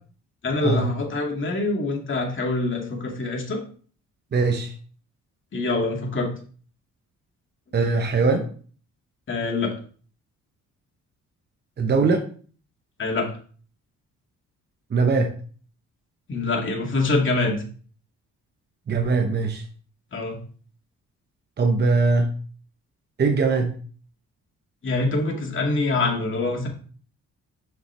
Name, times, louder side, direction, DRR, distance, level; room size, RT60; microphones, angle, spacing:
voice 1, 0.4-3.6 5.5-6.3 9.3-9.7 13.0-13.3 16.3-17.6 20.1-20.4 24.8-26.7, left 3 dB, 40° left, 0 dB, 2.3 m, -25 dB
voice 2, 4.3-4.7 7.7-8.5 11.8-12.2 14.9-15.3 18.9-19.6 21.6-22.3 23.2-23.7, right 4 dB, 35° right, 4 dB, 0.9 m, -21 dB
7.1 x 5.8 x 3.4 m, 0.43 s
cardioid pair, 90°, 30 cm